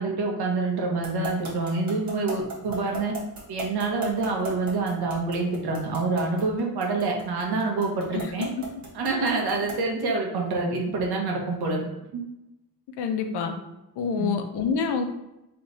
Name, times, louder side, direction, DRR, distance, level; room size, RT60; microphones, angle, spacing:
voice 1, 0.0-3.1 3.5-8.5 8.9-11.8 12.1-12.2 14.2-14.4, right 3 dB, 70° right, 0 dB, 1.2 m, -27 dB
sound 1, 1.0-9.9, right 2 dB, 45° right, 1.6 m, -35 dB
voice 2, 13.0-13.5 14.0-15.0, left 6 dB, 85° left, 5 dB, 0.7 m, -26 dB
3.3 x 3.3 x 4.0 m, 0.94 s
cardioid pair, 155°, 39 cm